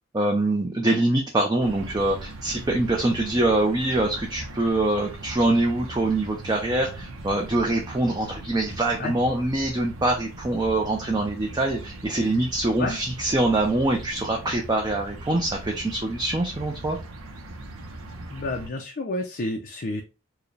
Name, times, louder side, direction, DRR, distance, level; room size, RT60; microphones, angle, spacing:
voice 1, 0.1-17.0, right 2 dB, 20° right, 1 dB, 0.5 m, -24 dB
sound 1, 1.6-18.7, right 1 dB, 80° right, 0.8 m, -39 dB
voice 2, 18.3-20.0, left 2 dB, 45° left, 2 dB, 0.5 m, -30 dB
4.6 x 2.2 x 3.2 m, 0.30 s
head